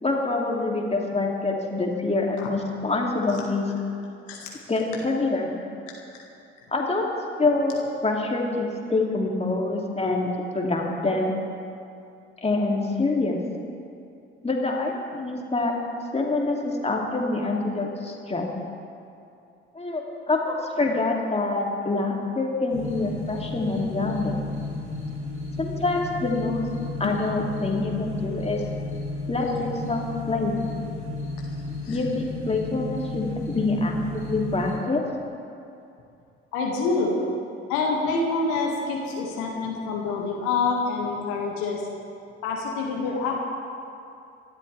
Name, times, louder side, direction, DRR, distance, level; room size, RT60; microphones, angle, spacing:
voice 1, 0.0-3.7 4.7-5.5 6.7-7.1 7.4-11.3 12.4-13.4 14.4-15.7 16.1-18.5 19.7-24.3 25.6-26.7 27.0-28.6 29.3-30.6 31.9-35.0, left 3 dB, 20° left, -1 dB, 2.8 m, -26 dB
sound 1, 22.7-34.8, left 2 dB, 80° right, 3.9 m, -33 dB
voice 2, 36.5-37.2 37.7-41.8 42.4-43.4, left 4 dB, 65° left, -2 dB, 2.1 m, -26 dB
25.0 x 12.0 x 3.5 m, 2.6 s
figure-of-eight pair, 50°, 32 cm